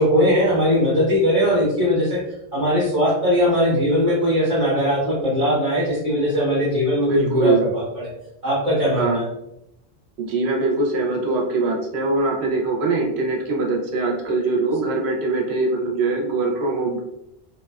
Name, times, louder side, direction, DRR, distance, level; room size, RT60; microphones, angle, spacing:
voice 1, 0.0-2.2 2.5-8.1 8.4-9.3, equal, 35° right, -10 dB, 1.1 m, -20 dB
voice 2, 7.0-7.6 9.0-9.2 10.2-17.0, right 3 dB, 85° right, -1 dB, 0.9 m, -22 dB
2.6 x 2.3 x 2.2 m, 0.81 s
omnidirectional pair, 1.1 m